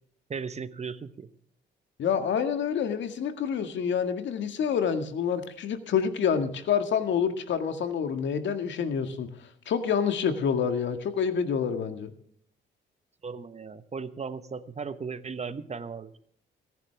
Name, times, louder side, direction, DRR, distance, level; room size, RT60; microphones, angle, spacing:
voice 1, 0.3-1.3 13.2-16.1, right 5 dB, 35° right, 13 dB, 1.0 m, -36 dB
voice 2, 2.0-9.3 9.7-12.1, left 7 dB, 70° left, 8 dB, 1.9 m, -27 dB
24.5 x 10.5 x 3.4 m, 0.62 s
cardioid pair, 90°, 20 cm